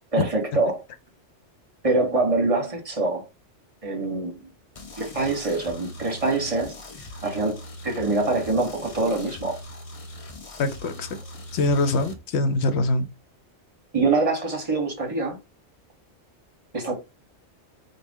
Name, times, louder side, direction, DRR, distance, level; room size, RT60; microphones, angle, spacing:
voice 1, 0.1-0.8 1.8-3.3 3.8-4.4 5.0-6.8 7.2-9.6 13.9-15.4 16.7-16.9, right 3 dB, 35° right, 0.9 m, -24 dB
sound 1, 4.7-12.1, left 1 dB, 40° left, 0.6 m, -41 dB
voice 2, 10.6-11.2 11.5-13.1, left 2 dB, 70° left, 0.9 m, -23 dB
3.8 x 2.2 x 3.5 m
omnidirectional pair, 1.2 m